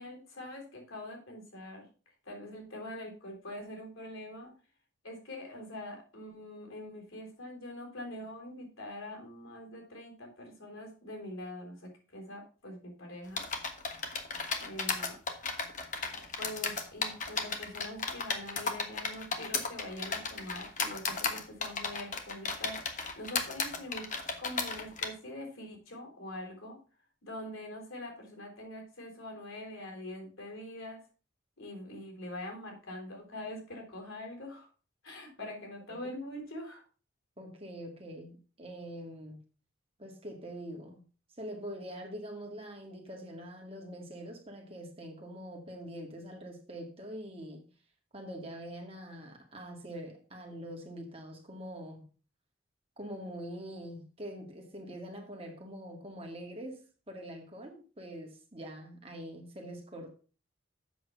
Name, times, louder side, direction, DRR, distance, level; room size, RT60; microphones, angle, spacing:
voice 1, 0.0-1.9 2.3-4.5 5.0-13.4 14.6-15.2 16.4-24.1 24.4-26.8 27.2-31.0 31.6-34.7 35.0-36.8, left 1 dB, 90° left, 4.0 m, -44 dB
sound 1, 13.4-25.1, left 4 dB, 40° left, 1.3 m, -35 dB
voice 2, 37.4-39.4 40.0-41.0 41.4-47.7 48.1-52.0 53.0-60.1, equal, 30° right, 2.1 m, -44 dB
7.8 x 6.5 x 5.7 m
head